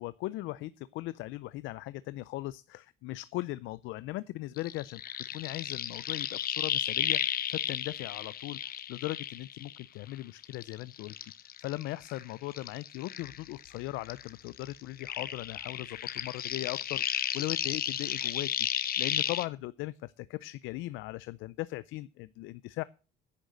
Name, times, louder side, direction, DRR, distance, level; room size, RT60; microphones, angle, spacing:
voice 1, 0.0-5.0 5.3-11.2 11.6-18.7 19.0-22.8, left 17 dB, 80° left, 18 dB, 0.5 m, -38 dB
sound 1, 4.6-10.1 10.4-13.8 14.0-19.4, left 10 dB, 50° left, 0.9 m, -34 dB
9.8 x 6.5 x 7.7 m, 0.34 s
cardioid pair, 110°, 20 cm